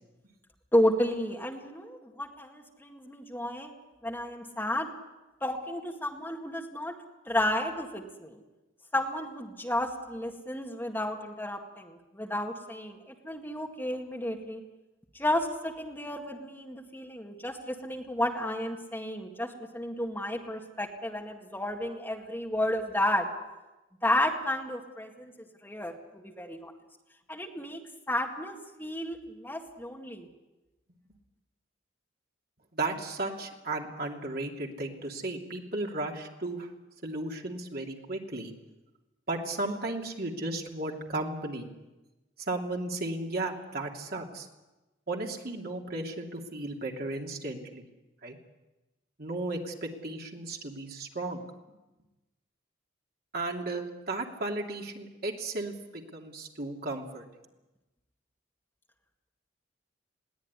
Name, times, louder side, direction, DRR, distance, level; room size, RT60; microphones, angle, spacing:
voice 1, 0.7-3.7 4.0-4.9 5.4-6.9 7.3-8.4 8.9-14.6 15.1-23.3 24.0-26.7 27.3-27.8 28.1-30.3, left 1 dB, 10° left, 1 dB, 2.0 m, -32 dB
voice 2, 32.7-36.7 37.0-38.5 39.3-41.7 42.5-44.5 45.1-47.8 48.2-48.4 49.2-51.5 53.3-57.2, right 2 dB, 50° right, 1 dB, 2.8 m, -35 dB
21.5 x 17.0 x 9.8 m, 1.1 s
head